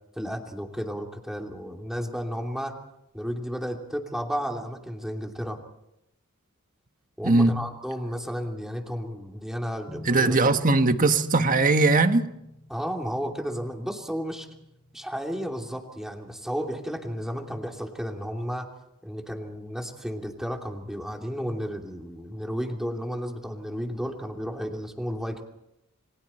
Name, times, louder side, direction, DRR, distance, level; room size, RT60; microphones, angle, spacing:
voice 1, 0.1-2.7 3.1-5.6 7.2-10.4 12.7-14.5 14.9-18.7 19.0-25.4, equal, ahead, 2.9 m, -33 dB
sound 1, 9.9-15.5, left 1 dB, 25° left, 4.3 m, -49 dB
voice 2, 10.0-12.2, right 3 dB, 40° right, 1.5 m, -20 dB
28.5 x 24.5 x 4.4 m
head